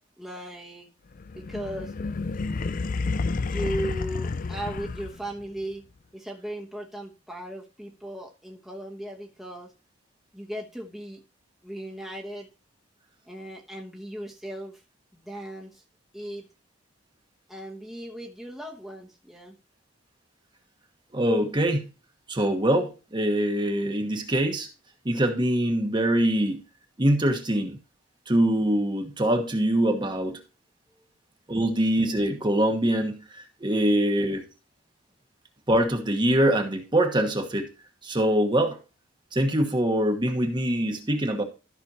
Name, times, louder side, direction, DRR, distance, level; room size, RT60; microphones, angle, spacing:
voice 1, 0.2-0.9 1.3-1.9 3.5-5.8 6.1-9.7 10.3-11.2 11.6-12.5 13.3-14.8 15.1-15.8 16.1-16.5 17.5-19.6, right 1 dB, ahead, -1 dB, 1.0 m, -37 dB
sound 1, 1.2-5.4, left 3 dB, 40° left, 0.4 m, -30 dB
voice 2, 21.1-21.9 22.3-24.7 25.0-26.6 27.0-27.8 28.3-30.4 31.5-33.2 33.6-34.4 35.7-37.7 38.0-38.8 39.3-41.4, right 1 dB, 25° right, 5 dB, 1.2 m, -23 dB
13.5 x 6.1 x 2.8 m, 0.32 s
head